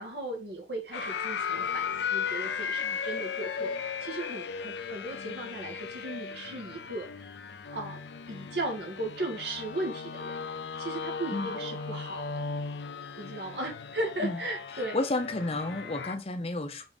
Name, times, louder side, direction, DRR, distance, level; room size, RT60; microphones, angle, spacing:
voice 1, 0.0-7.3 7.7-8.0 8.3-10.4 10.8-12.2 13.2-15.1, right 2 dB, 70° right, 2.2 m, -36 dB
sound 1, 0.9-16.2, left 6 dB, 70° left, 0.5 m, -36 dB
voice 2, 14.9-16.8, left 2 dB, 35° left, 0.7 m, -31 dB
5.3 x 4.7 x 4.0 m
head